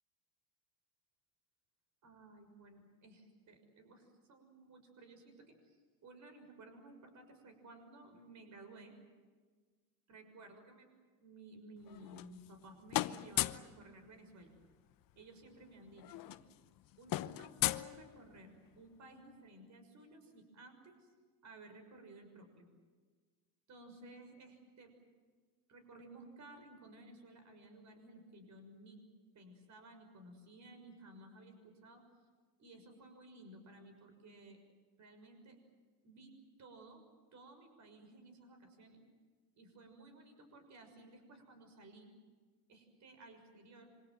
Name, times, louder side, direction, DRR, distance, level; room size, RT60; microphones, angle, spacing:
voice 1, 2.0-8.9 10.1-10.9 11.2-14.5 15.2-16.4 17.0-21.1 21.4-22.6 23.7-24.9 25.7-29.0 29.3-32.0 32.6-34.6 35.0-35.6 36.0-36.3 36.6-37.0 37.3-39.0 39.6-42.1 42.7-43.9, right 2 dB, 40° right, 7 dB, 6.3 m, -56 dB
sound 1, 11.9-12.6 12.9-13.7 15.1-15.2 15.4-15.6 15.9-18.6, left 16 dB, 50° left, 0.9 m, -37 dB
27.0 x 25.0 x 7.8 m, 1.4 s
supercardioid pair, 115°, 44 cm